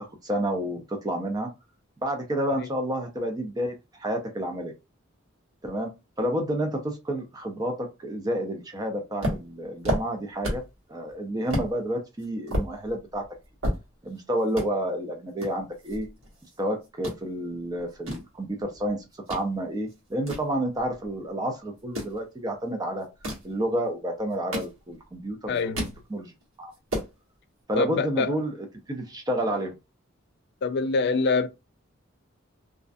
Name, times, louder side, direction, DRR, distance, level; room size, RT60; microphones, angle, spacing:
voice 1, 0.2-1.5 2.0-4.7 5.6-10.6 10.9-13.2 14.0-16.1 16.6-23.1 23.4-26.3 26.6-26.7 27.7-29.7, right 1 dB, 20° right, 0.4 m, -30 dB
sound 1, 9.2-10.8 11.1-11.2 11.5-11.7 12.2-14.2 14.5-14.7 15.4-16.6 16.8-17.2 17.8-19.5 19.9-21.2 21.8-22.2 23.0-23.5 24.2-25.1 25.4-26.0 26.4-26.5 26.7-27.1, equal, 85° right, 1.1 m, -32 dB
voice 2, 25.5-25.9 27.8-28.4 30.6-31.5, left 4 dB, 55° left, 0.3 m, -25 dB
2.4 x 2.1 x 2.5 m
head